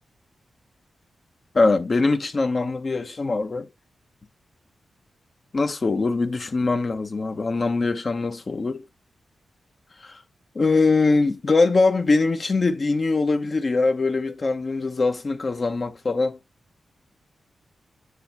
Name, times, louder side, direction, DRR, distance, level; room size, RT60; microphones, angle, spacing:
voice 1, 1.5-3.7 5.5-8.8 10.0-10.2 10.5-16.4, left 3 dB, 45° left, 1.0 m, -22 dB
9.7 x 3.3 x 3.1 m
cardioid pair, 85°, 0 cm